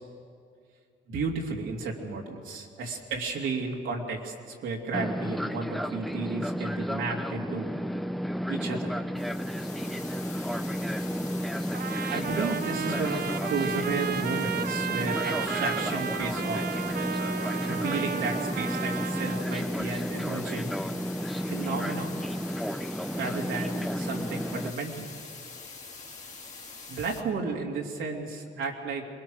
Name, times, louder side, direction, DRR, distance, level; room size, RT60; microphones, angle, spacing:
voice 1, 1.1-7.7 8.5-9.0 12.1-17.0 17.6-20.7 21.5-22.3 23.1-25.1 26.9-29.1, right 4 dB, 80° right, -1 dB, 2.8 m, -33 dB
Fixed-wing aircraft airplane, 4.9-24.7, equal, ahead, 0.6 m, -32 dB
sound 1, 9.1-27.2, left 4 dB, 35° left, 2.5 m, -44 dB
Trumpet, 11.7-19.5, right 8 dB, 50° right, 0.6 m, -34 dB
23.0 x 20.5 x 6.4 m, 2.3 s
cardioid pair, 90°, 20 cm